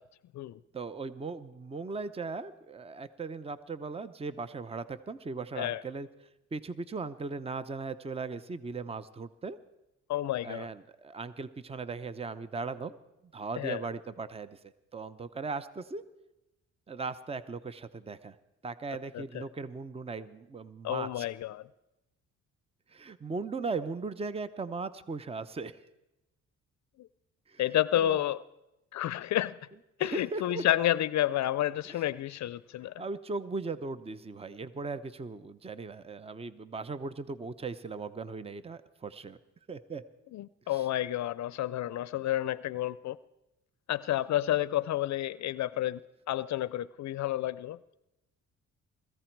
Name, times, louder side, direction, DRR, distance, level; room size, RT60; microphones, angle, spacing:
voice 1, 0.7-6.1 6.5-9.6 10.4-13.0 13.3-14.6 14.9-16.0 16.9-18.4 18.6-21.3 22.9-25.8 27.5-27.6 28.0-28.2 30.0-30.6 31.9-32.0 33.0-39.4 39.7-40.0 40.7-40.9, right 4 dB, 20° right, 14 dB, 0.8 m, -38 dB
voice 2, 10.1-10.7 13.6-13.8 19.1-19.4 20.8-21.7 27.0-27.1 27.6-28.4 28.9-29.6 30.0-32.9 40.3-43.2 43.9-46.0 46.3-48.0, left 13 dB, 65° left, 18 dB, 0.5 m, -30 dB
21.0 x 14.5 x 4.6 m, 0.94 s
cardioid pair, 90°, 30 cm